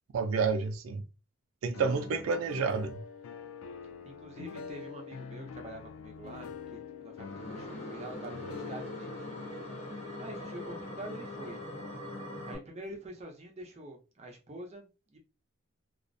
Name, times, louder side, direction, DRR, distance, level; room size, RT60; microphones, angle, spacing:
voice 1, 0.1-1.0 1.6-3.0, right 5 dB, 75° right, 0.4 m, -29 dB
sound 1, 1.7-11.7, left 6 dB, 90° left, 0.3 m, -46 dB
voice 2, 4.0-9.2 10.2-11.6 12.4-15.2, right 1 dB, 30° right, 0.6 m, -46 dB
sound 2, 7.2-12.6, left 1 dB, 35° left, 0.7 m, -42 dB
2.4 x 2.0 x 2.5 m
head